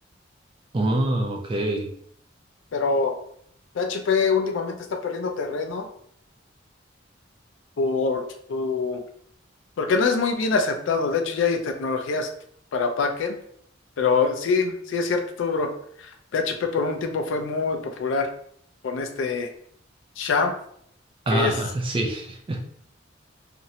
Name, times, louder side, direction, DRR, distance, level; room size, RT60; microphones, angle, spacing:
voice 1, 0.7-1.9 21.3-22.6, right 1 dB, 30° right, 2 dB, 0.4 m, -25 dB
voice 2, 2.7-3.2 3.8-5.9 7.8-8.2 8.5-9.0 9.8-12.3 12.7-13.4 14.0-15.7 16.0-18.3 18.8-19.5 20.2-20.5 21.3-21.5, left 4 dB, 75° left, 6 dB, 0.4 m, -24 dB
2.5 x 2.0 x 2.7 m, 0.66 s
head